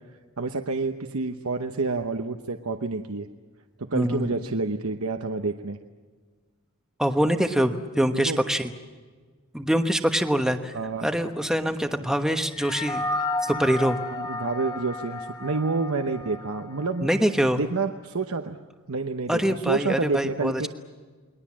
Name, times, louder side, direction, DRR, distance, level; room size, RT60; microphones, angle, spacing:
voice 1, 0.4-3.3 3.8-5.8 8.1-8.4 10.7-11.1 14.1-17.1 17.5-18.6 18.9-20.7, right 3 dB, 75° right, 6 dB, 1.0 m, -28 dB
voice 2, 3.9-4.3 7.0-8.7 9.5-10.7 11.0-13.1 13.4-14.0 17.0-17.6 19.3-20.7, equal, 5° right, 6 dB, 1.2 m, -24 dB
sound 1, 12.5-17.2, left 2 dB, 15° left, 1.5 m, -32 dB
29.0 x 21.5 x 7.4 m, 1.5 s
head